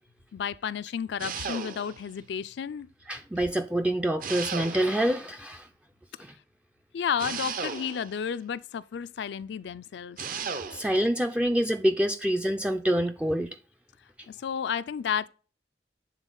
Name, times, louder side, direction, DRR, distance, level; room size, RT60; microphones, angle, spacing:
voice 1, 0.3-2.9 6.9-10.2 14.3-15.3, left 7 dB, 70° left, 0.3 m, -32 dB
sound 1, 1.2-2.1 4.2-5.2 7.2-8.2 10.2-11.0, right 5 dB, 50° right, 0.6 m, -35 dB
voice 2, 3.1-5.7 6.2-6.3 10.7-13.5, right 1 dB, 5° right, 0.3 m, -26 dB
8.1 x 3.8 x 3.8 m
head